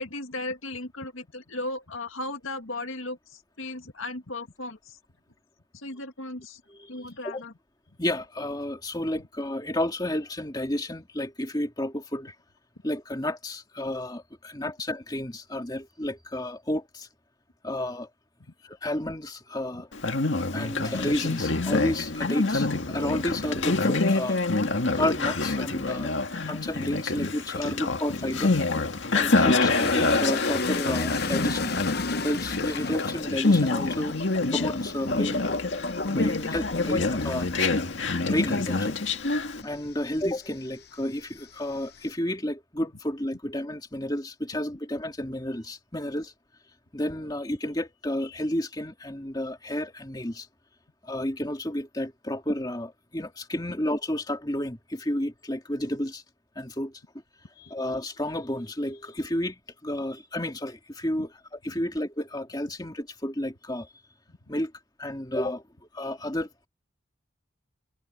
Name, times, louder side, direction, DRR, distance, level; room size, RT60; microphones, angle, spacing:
voice 1, 0.0-5.0 5.7-6.6 6.9-7.5 19.7-19.8 27.6-27.8 29.3-29.5 61.1-61.3, left 2 dB, 85° left, 2.1 m, -36 dB
voice 2, 6.7-7.4 8.0-12.3 12.8-17.1 17.6-18.1 18.6-19.9 20.5-24.4 24.9-26.1 26.4-28.5 29.1-31.7 32.2-34.2 34.5-35.5 36.1-37.5 38.3-39.0 39.6-46.3 46.9-50.5 51.1-56.2 56.6-57.0 57.6-63.9 64.5-64.7 65.0-65.6 65.9-66.7, left 1 dB, 20° left, 2.5 m, -31 dB
Conversation, 19.9-39.6, left 3 dB, 65° left, 1.9 m, -26 dB
sound 1, 29.7-40.6 41.0-42.1, left 3 dB, 50° left, 0.9 m, -34 dB
head